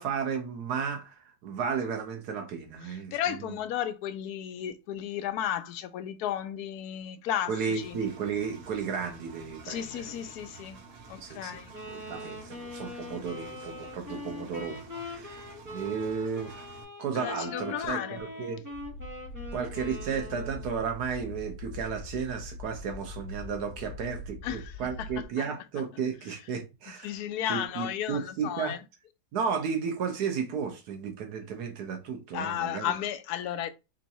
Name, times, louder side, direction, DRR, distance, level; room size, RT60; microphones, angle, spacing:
voice 1, 0.0-3.1 3.4-3.5 7.5-10.2 11.2-11.5 11.9-16.7 17.0-18.6 19.5-27.1 27.5-28.8 29.3-32.9, right 6 dB, 85° right, 1.5 m, -33 dB
voice 2, 2.9-8.0 9.6-10.8 11.1-11.7 17.2-18.2 24.4-25.1 27.0-28.8 32.3-33.7, left 10 dB, 80° left, 1.1 m, -34 dB
Engine, 7.8-16.8, right 5 dB, 60° right, 1.1 m, -50 dB
Wind instrument woodwind instrument, 11.7-20.8, left 2 dB, 15° right, 1.1 m, -42 dB
sound 1, 18.7-25.3, left 1 dB, 60° left, 0.7 m, -42 dB
3.7 x 2.6 x 4.1 m
omnidirectional pair, 1.7 m